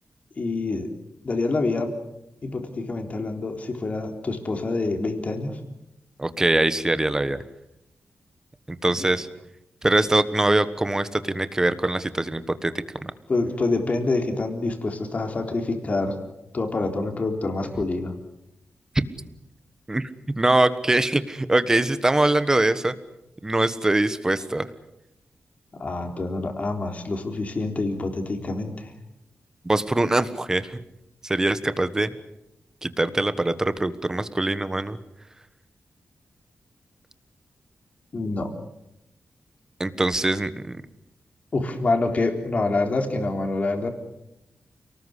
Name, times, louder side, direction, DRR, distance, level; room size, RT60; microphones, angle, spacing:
voice 1, 0.4-0.9 1.2-1.9 2.4-5.5 13.3-16.2 16.5-18.1 25.7-28.9 38.1-38.5 41.5-43.9, left 3 dB, 35° left, 4 dB, 3.8 m, -26 dB
voice 2, 6.2-7.4 8.7-9.3 9.8-12.7 13.0-13.1 19.9-20.1 20.4-22.9 23.4-24.7 29.6-30.8 31.2-32.1 32.8-35.0 39.8-40.7, right 2 dB, 15° right, 12 dB, 1.3 m, -23 dB
29.0 x 19.5 x 8.2 m, 0.87 s
wide cardioid pair, 160°, 4 cm